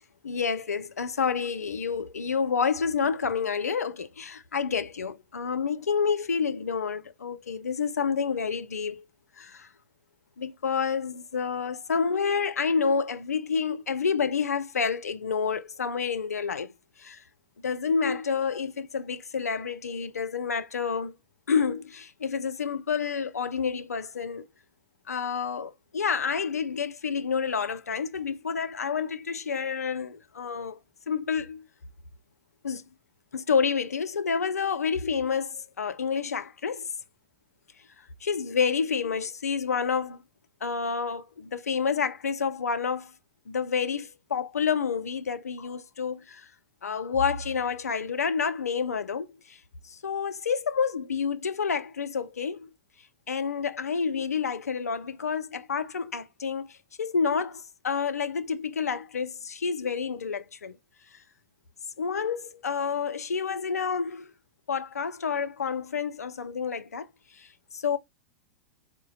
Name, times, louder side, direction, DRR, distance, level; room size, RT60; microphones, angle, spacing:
voice 1, 0.2-9.0 9.4-9.7 10.4-16.7 17.0-17.2 17.6-21.1 21.5-24.5 25.1-30.8 31.1-31.6 32.6-32.8 33.3-36.9 38.2-40.2 40.6-43.1 43.5-46.5 46.8-49.6 49.8-52.7 53.3-60.8 62.0-64.3 64.7-67.1 67.4-67.5 67.7-68.0, left 6 dB, 80° left, 0.5 m, -29 dB
3.8 x 2.1 x 3.8 m
figure-of-eight pair, 100°, 8 cm